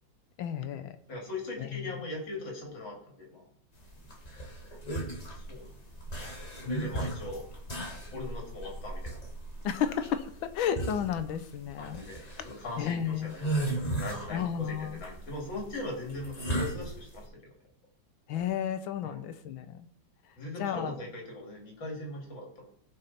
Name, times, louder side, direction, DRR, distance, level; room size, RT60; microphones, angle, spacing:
voice 1, 0.4-1.0 1.6-1.8 9.6-12.0 12.4-12.5 12.8-13.3 14.3-15.0 18.3-19.9 20.6-20.9, left 8 dB, 85° left, 11 dB, 1.6 m, -32 dB
voice 2, 1.1-3.4 5.3-5.8 6.6-7.5 8.1-9.3 11.8-12.2 12.4-17.5 19.0-19.3 20.4-22.6, left 2 dB, 70° left, 0 dB, 3.3 m, -40 dB
sound 1, 3.8-17.2, right 2 dB, 25° left, 1.2 m, -36 dB
16.0 x 5.6 x 4.2 m, 0.67 s
omnidirectional pair, 2.1 m